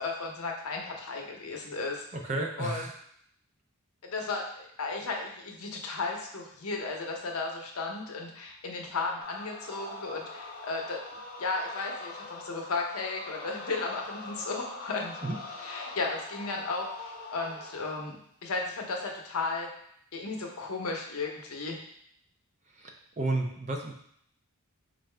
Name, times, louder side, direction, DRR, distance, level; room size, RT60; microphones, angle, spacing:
voice 1, 0.0-2.0 2.6-2.8 4.0-11.0 11.4-15.2 15.6-19.7 20.1-21.8, left 3 dB, 80° left, 1 dB, 0.7 m, -34 dB
voice 2, 2.1-2.9 15.2-15.4 22.8-23.9, right 2 dB, 35° right, 2 dB, 0.5 m, -32 dB
sound 1, 9.2-18.1, left 3 dB, 40° left, 0.6 m, -43 dB
4.5 x 2.5 x 3.2 m, 0.68 s
head